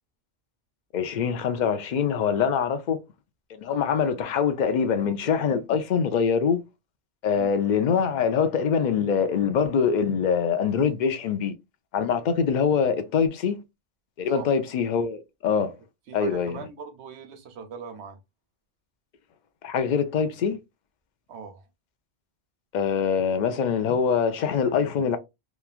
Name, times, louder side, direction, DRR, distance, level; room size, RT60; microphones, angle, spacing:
voice 1, 0.9-3.0 3.5-6.6 7.2-11.5 11.9-13.6 14.2-15.7 16.1-16.6 19.6-20.6 22.7-25.2, left 6 dB, 55° left, 0.6 m, -24 dB
voice 2, 16.1-18.2 21.3-21.6, right 6 dB, 85° right, 0.9 m, -40 dB
3.0 x 2.3 x 2.3 m
omnidirectional pair, 1.1 m